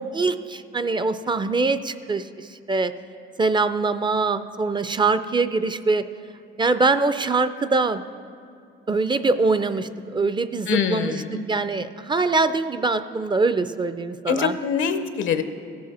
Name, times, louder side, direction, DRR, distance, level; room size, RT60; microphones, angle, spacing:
voice 1, 0.0-2.9 3.4-6.0 6.6-8.0 8.9-14.5, right 3 dB, 25° right, 12 dB, 0.4 m, -23 dB
voice 2, 10.7-11.4 14.3-15.4, left 6 dB, 80° left, 9 dB, 0.8 m, -24 dB
16.0 x 7.6 x 4.2 m, 2.5 s
cardioid pair, 90°, 20 cm